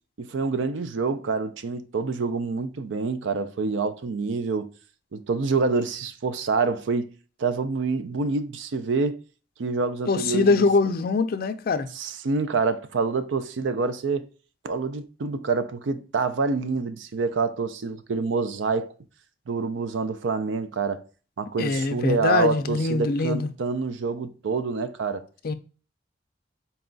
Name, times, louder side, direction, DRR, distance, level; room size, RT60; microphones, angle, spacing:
voice 1, 0.2-4.7 5.1-7.1 7.4-9.2 9.6-10.7 11.9-14.3 14.6-18.9 19.5-21.0 21.4-25.3, right 4 dB, 90° right, 0.4 m, -27 dB
voice 2, 10.1-11.9 21.6-23.5 25.4-25.5, left 4 dB, 55° left, 0.4 m, -23 dB
4.1 x 2.3 x 3.7 m
head